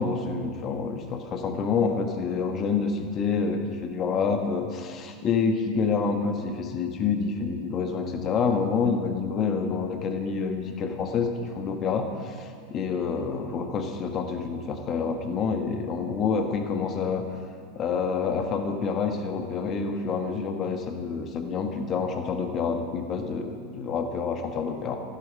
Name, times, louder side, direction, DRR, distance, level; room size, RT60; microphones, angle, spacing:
voice 1, 0.0-17.3 17.7-25.0, left 5 dB, 35° left, 5 dB, 1.4 m, -28 dB
15.5 x 13.0 x 5.4 m, 2.3 s
figure-of-eight pair, 85°, 0 cm